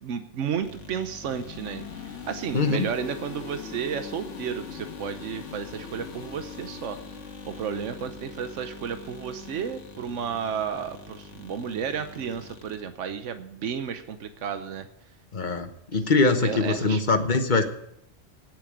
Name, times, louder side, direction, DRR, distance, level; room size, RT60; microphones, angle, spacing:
voice 1, 0.0-7.0 7.5-14.9 15.9-16.0 16.4-17.0, right 7 dB, 85° right, 9 dB, 1.2 m, -32 dB
sound 1, 0.6-12.8, left 5 dB, 85° left, 1.5 m, -42 dB
voice 2, 2.5-2.9 15.3-17.6, left 3 dB, 40° left, 7 dB, 1.3 m, -23 dB
9.4 x 8.8 x 8.9 m, 0.76 s
omnidirectional pair, 1.2 m